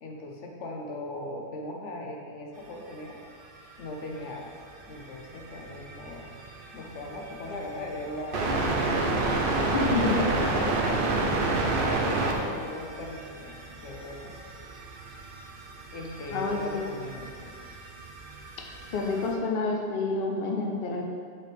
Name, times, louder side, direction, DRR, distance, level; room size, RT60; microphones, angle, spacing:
voice 1, 0.0-3.2 3.8-4.5 4.9-6.3 6.7-9.0 9.9-14.4 15.9-17.5, left 1 dB, 85° left, 0 dB, 1.2 m, -39 dB
sound 1, 3.6-3.7 4.1-4.2 4.6-19.3, right 2 dB, 55° right, 1.0 m, -31 dB
voice 2, 9.7-10.2 16.3-16.8 18.9-21.1, left 3 dB, 55° left, 0 dB, 1.0 m, -28 dB
8.4 x 5.6 x 3.5 m, 2.1 s
omnidirectional pair, 1.2 m